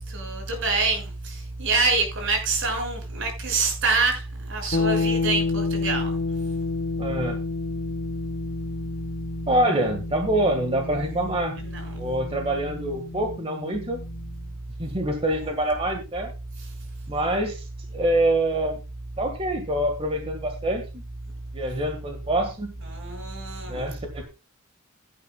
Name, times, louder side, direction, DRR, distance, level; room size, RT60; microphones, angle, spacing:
voice 1, 0.1-1.0 1.6-4.2 4.5-6.1 11.7-11.8 22.9-23.8, right 3 dB, 65° right, 6.1 m, -25 dB
sound 1, 4.7-14.5, left 3 dB, 55° left, 1.1 m, -30 dB
voice 2, 7.0-7.4 9.5-11.6 11.9-14.0 14.8-16.3 17.1-17.7 17.9-18.8 19.2-21.0 21.5-22.7 23.7-24.2, right 1 dB, 30° right, 1.7 m, -25 dB
17.0 x 10.5 x 2.3 m
head